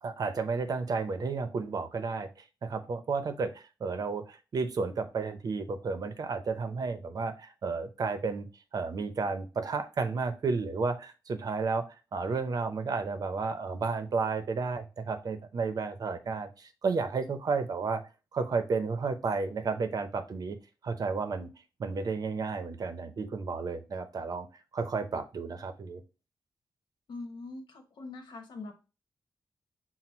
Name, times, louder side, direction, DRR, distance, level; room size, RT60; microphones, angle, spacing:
voice 1, 0.0-2.3 2.6-8.5 8.7-11.9 12.1-18.0 18.3-20.6 20.8-21.5 21.8-24.5 24.7-26.0, right 4 dB, 60° right, 8 dB, 0.6 m, -32 dB
voice 2, 27.1-28.7, left 3 dB, 85° left, 4 dB, 1.0 m, -42 dB
6.0 x 2.1 x 4.2 m, 0.31 s
wide cardioid pair, 120°, 7 cm